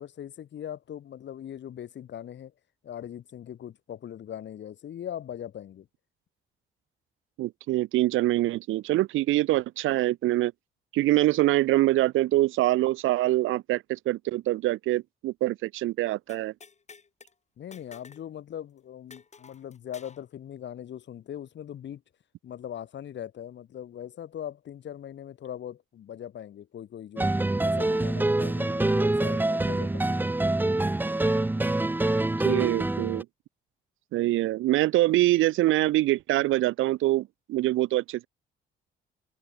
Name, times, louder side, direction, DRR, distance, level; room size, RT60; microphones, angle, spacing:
voice 1, 0.0-2.5 2.8-5.9 17.6-22.0 22.4-27.3 27.6-30.2, left 10 dB, 65° left, 3.8 m, -40 dB
voice 2, 7.4-10.5 10.9-16.5 32.4-33.2 34.1-38.3, right 16 dB, 90° right, 1.5 m, -24 dB
sound 1, 16.3-17.3 17.7-18.3 18.5-18.6 19.1-20.2, left 5 dB, 35° left, 5.8 m, -51 dB
sound 2, 27.2-33.2, right 2 dB, 10° right, 0.7 m, -25 dB
cardioid pair, 90°, 20 cm